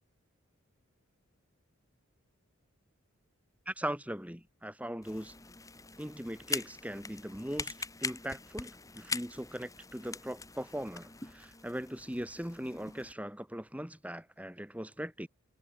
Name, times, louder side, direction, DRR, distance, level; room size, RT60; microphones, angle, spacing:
voice 1, 3.7-5.3 6.0-15.3, equal, 5° right, 3.3 m, -40 dB
sound 1, 5.0-13.1, left 4 dB, 15° left, 3.6 m, -42 dB
head